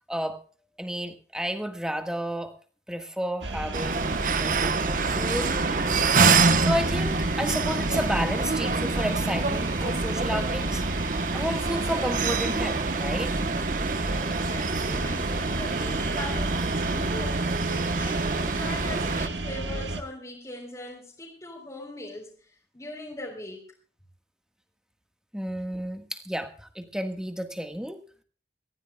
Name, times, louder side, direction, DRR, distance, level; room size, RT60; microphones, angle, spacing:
voice 1, 0.8-2.5 2.9-5.5 6.6-10.8 11.3-13.4 25.3-28.0, equal, 5° right, 5 dB, 1.6 m, -31 dB
sound 1, 3.4-20.0, right 2 dB, 85° right, 1.7 m, -32 dB
sound 2, 3.7-19.3, right 4 dB, 45° right, 1.1 m, -26 dB
voice 2, 13.9-23.7, left 1 dB, 20° left, -4 dB, 3.9 m, -40 dB
24.5 x 15.0 x 2.4 m, 0.41 s
head